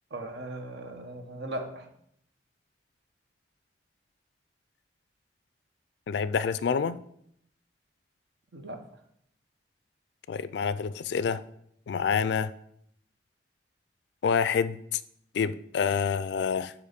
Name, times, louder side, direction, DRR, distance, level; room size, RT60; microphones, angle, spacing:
voice 1, 0.1-1.9 8.5-8.8, right 1 dB, 70° right, 6 dB, 0.9 m, -38 dB
voice 2, 6.1-7.0 10.3-11.4 11.9-12.5 14.2-15.0 15.3-16.7, left 6 dB, 70° left, 15 dB, 0.3 m, -27 dB
8.1 x 3.0 x 5.1 m, 0.71 s
head